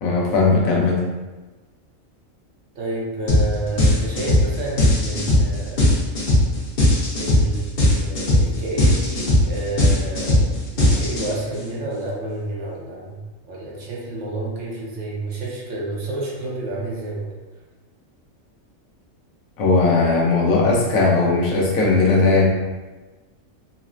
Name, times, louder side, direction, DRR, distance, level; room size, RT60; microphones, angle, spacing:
voice 1, 0.0-1.0 19.6-22.5, left 3 dB, 85° left, -2 dB, 1.1 m, -18 dB
voice 2, 2.7-5.9 7.1-10.4 10.7-13.2 13.5-17.3, right 2 dB, 65° right, -4 dB, 1.1 m, -29 dB
sound 1, 3.3-3.5 3.8-11.6, left 1 dB, 45° left, 0.9 m, -17 dB
4.0 x 2.0 x 2.4 m, 1.2 s
omnidirectional pair, 1.4 m